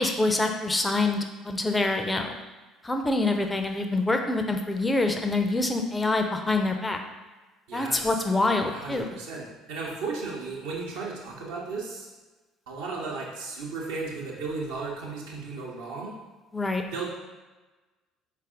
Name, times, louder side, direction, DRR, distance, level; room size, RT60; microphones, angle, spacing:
voice 1, 0.0-2.4 2.8-7.0 7.7-9.1 16.5-16.8, left 2 dB, 15° left, 5 dB, 0.4 m, -26 dB
voice 2, 7.7-8.2 8.7-12.1 12.7-16.1 16.9-17.1, right 4 dB, 65° right, -3 dB, 0.8 m, -35 dB
4.1 x 2.5 x 3.6 m, 1.2 s
figure-of-eight pair, 55°, 0 cm